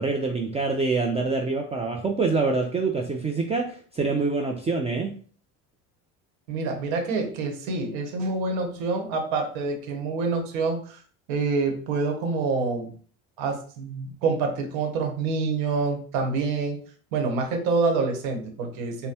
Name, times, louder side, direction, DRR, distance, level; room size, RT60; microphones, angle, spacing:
voice 1, 0.0-5.1, right 3 dB, 15° right, 1 dB, 0.5 m, -25 dB
voice 2, 6.5-11.0 11.3-12.9 13.4-16.8 17.1-19.1, right 4 dB, 80° right, 3 dB, 1.1 m, -27 dB
5.2 x 2.2 x 2.8 m, 0.44 s
supercardioid pair, 100°, 40 cm